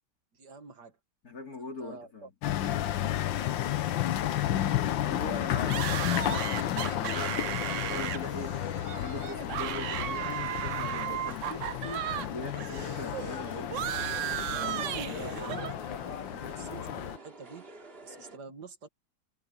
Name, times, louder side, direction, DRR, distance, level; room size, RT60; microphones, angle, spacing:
voice 1, 0.3-1.0 1.6-2.3 14.6-17.7 18.0-18.9, right 5 dB, 65° right, 2.2 m, -45 dB
voice 2, 1.2-2.3 5.0-8.6 8.9-15.6, left 3 dB, 50° left, 3.6 m, -41 dB
sound 1, 2.4-17.2, left 12 dB, 85° left, 1.6 m, -32 dB
sound 2, 5.7-12.3 12.5-15.7, right 12 dB, 90° right, 0.6 m, -35 dB
sound 3, 11.5-18.4, right 3 dB, 30° right, 2.5 m, -50 dB
omnidirectional pair, 2.0 m